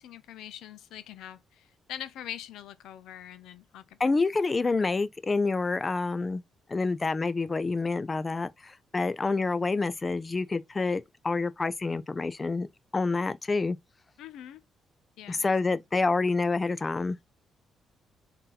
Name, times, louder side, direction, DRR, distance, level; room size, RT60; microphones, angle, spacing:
voice 1, 0.0-4.1 4.6-4.8 14.2-14.6 15.2-15.5, left 11 dB, 85° left, 0.5 m, -43 dB
voice 2, 4.0-6.4 6.7-12.7 12.9-13.8 15.3-17.3, left 3 dB, 25° left, 0.4 m, -28 dB
3.8 x 2.7 x 3.9 m
cardioid pair, 90°, 0 cm